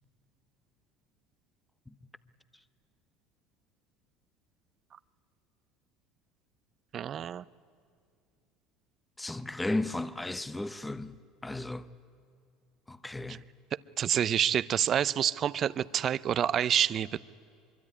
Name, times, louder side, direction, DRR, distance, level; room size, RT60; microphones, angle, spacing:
voice 1, 6.9-7.4 13.3-13.4 14.0-17.2, right 9 dB, 45° right, 0.6 m, -28 dB
voice 2, 9.2-11.9 12.9-13.4, left 2 dB, 10° left, 0.9 m, -34 dB
24.5 x 23.5 x 9.8 m
supercardioid pair, 95°, 0 cm